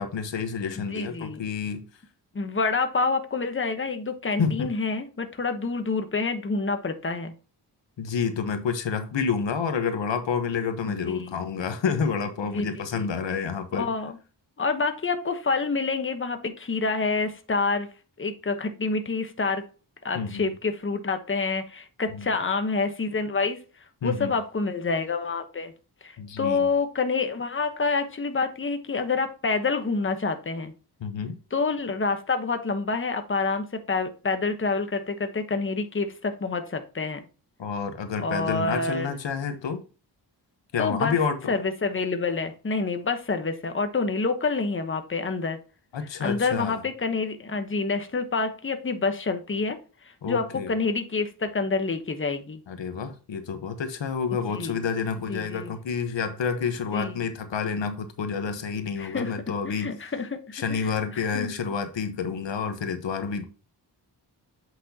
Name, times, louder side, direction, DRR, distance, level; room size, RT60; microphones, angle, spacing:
voice 1, 0.0-1.8 4.4-4.7 8.0-13.9 20.1-20.5 22.1-22.3 24.0-24.3 26.2-26.7 31.0-31.4 37.6-39.8 40.7-41.6 45.9-46.8 50.2-50.7 52.7-60.1 60.5-63.5, left 6 dB, 90° left, 1.2 m, -29 dB
voice 2, 0.8-1.4 2.3-7.3 10.9-11.4 12.5-12.7 12.9-13.1 13.7-14.2 14.6-17.9 18.2-19.7 20.0-23.6 24.0-25.7 26.0-30.7 31.5-37.2 38.2-39.1 40.8-41.2 41.5-45.6 46.2-49.8 50.3-52.6 54.5-54.8 55.3-55.7 56.9-57.2 59.0-59.3 59.6-61.5, left 4 dB, 30° left, 1.1 m, -27 dB
8.2 x 6.1 x 2.8 m
wide cardioid pair, 105°, 43 cm